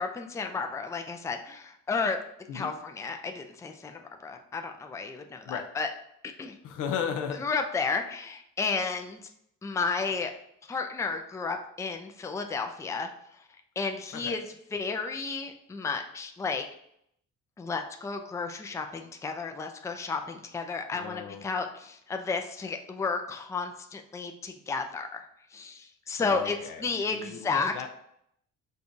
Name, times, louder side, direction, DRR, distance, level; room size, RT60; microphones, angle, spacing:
voice 1, 0.0-2.2 2.5-5.9 6.2-6.6 7.4-9.2 9.6-10.3 10.7-13.1 13.8-14.4 14.7-16.7 17.6-25.3 25.5-26.6 26.8-27.7, left 4 dB, 10° left, 5 dB, 0.3 m, -32 dB
voice 2, 6.6-7.4 14.1-14.4 20.9-21.4 26.2-27.9, left 7 dB, 85° left, 5 dB, 0.6 m, -35 dB
5.3 x 2.3 x 2.6 m, 0.71 s
cardioid pair, 90°, 30 cm